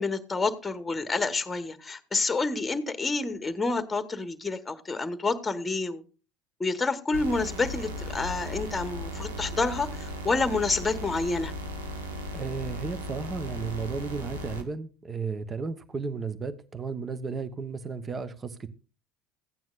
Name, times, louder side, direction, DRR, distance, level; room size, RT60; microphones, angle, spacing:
voice 1, 0.0-6.0 6.6-11.5, left 3 dB, 15° left, 11 dB, 1.2 m, -28 dB
sound 1, 7.1-14.6, equal, 85° right, 1.3 m, -36 dB
voice 2, 12.3-18.7, right 5 dB, 25° right, 11 dB, 1.0 m, -34 dB
15.0 x 9.2 x 2.5 m, 0.34 s
figure-of-eight pair, 70°, 0 cm